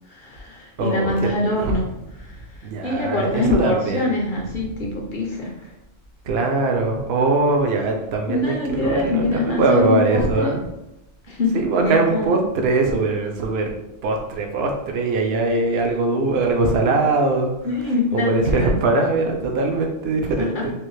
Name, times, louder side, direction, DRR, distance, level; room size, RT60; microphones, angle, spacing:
voice 1, 0.1-1.9 2.2-5.7 8.3-10.5 11.3-12.3 17.6-18.7 20.4-20.6, left 2 dB, 55° left, -1 dB, 0.6 m, -24 dB
voice 2, 0.8-1.1 1.6-1.7 2.6-4.1 6.3-10.7 11.5-13.7 14.0-17.5 18.1-20.7, right 3 dB, 60° right, 2 dB, 0.8 m, -21 dB
3.4 x 2.4 x 3.1 m, 0.90 s
omnidirectional pair, 1.3 m